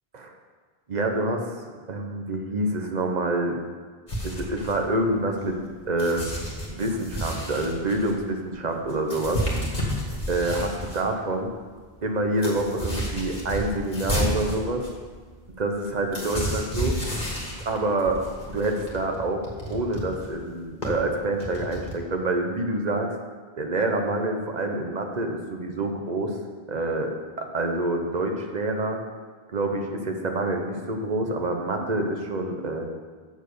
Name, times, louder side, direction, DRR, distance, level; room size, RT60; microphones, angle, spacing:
voice 1, 0.9-3.6 4.2-6.3 6.7-9.4 10.3-11.5 12.0-14.8 15.6-17.0 17.6-18.2 18.5-23.1 23.6-26.3 26.7-29.0 29.5-32.9, right 2 dB, 45° right, 3 dB, 1.1 m, -27 dB
sound 1, 4.1-5.6 6.0-11.0 11.5-11.6 11.8-21.9, equal, 50° left, 2.0 m, -31 dB
7.3 x 6.5 x 6.8 m, 1.5 s
omnidirectional pair, 1.0 m